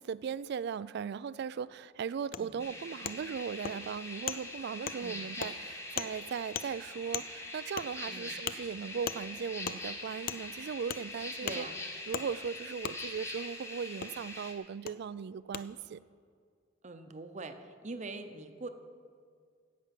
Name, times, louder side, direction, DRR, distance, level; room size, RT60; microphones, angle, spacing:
voice 1, 0.0-11.7 12.1-16.0, right 6 dB, 60° right, 19 dB, 0.3 m, -38 dB
Wood, 2.3-2.4 3.0-3.2 3.6-3.8 4.3-4.4 4.9-5.0 5.4-5.5 6.0-6.1 6.5-6.7 7.1-7.3 7.8-7.9 8.5-8.6 9.1-9.2 9.6-9.8 10.3-10.4 10.9-11.0 11.5-11.6 12.1-12.3 12.8-13.0 14.0-14.1 14.9-15.0 15.5-15.6, left 8 dB, 50° left, 0.4 m, -36 dB
sound 1, 2.6-14.5, left 2 dB, 15° left, 1.3 m, -43 dB
voice 2, 11.4-11.8 16.8-18.7, right 3 dB, 40° right, 8 dB, 0.8 m, -43 dB
16.5 x 5.9 x 7.6 m, 2.1 s
head